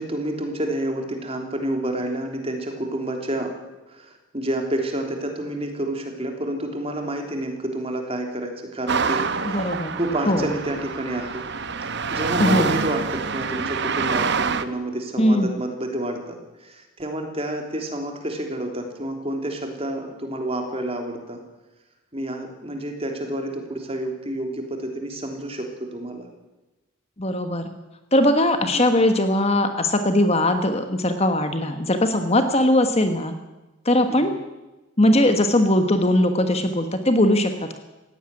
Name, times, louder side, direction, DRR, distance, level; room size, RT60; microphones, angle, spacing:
voice 1, 0.0-3.5 3.9-11.4 11.8-21.4 22.1-26.3 28.6-28.9 34.1-34.4, right 1 dB, 25° right, 3 dB, 3.4 m, -29 dB
sound 1, 8.9-14.6, right 5 dB, 55° right, 1.0 m, -26 dB
voice 2, 9.4-10.0 10.3-10.5 12.4-12.7 15.2-15.5 27.2-27.7 28.1-33.3 33.8-34.3 35.0-37.8, left 1 dB, 30° left, 8 dB, 1.4 m, -20 dB
17.5 x 16.0 x 9.8 m, 1.1 s
head